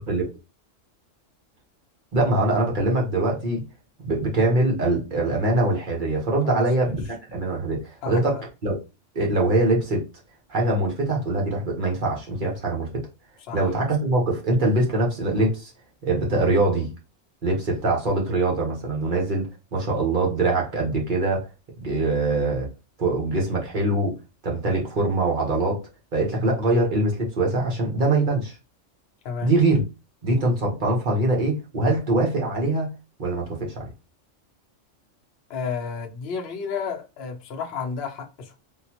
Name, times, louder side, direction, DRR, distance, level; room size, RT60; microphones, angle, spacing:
voice 1, 2.1-3.6 4.0-7.0 7.3-8.8 9.1-10.0 10.5-13.1 13.5-15.7 16.0-16.9 17.4-21.4 21.8-22.7 23.0-24.2 24.4-25.8 26.1-28.5 29.4-29.8 30.2-32.9 33.2-33.9, right 2 dB, 45° right, 1.0 m, -23 dB
voice 2, 6.4-6.9 8.0-8.4 13.5-13.6 29.2-29.5 35.5-38.6, left 5 dB, 60° left, 0.8 m, -32 dB
3.7 x 2.2 x 2.8 m
omnidirectional pair, 1.3 m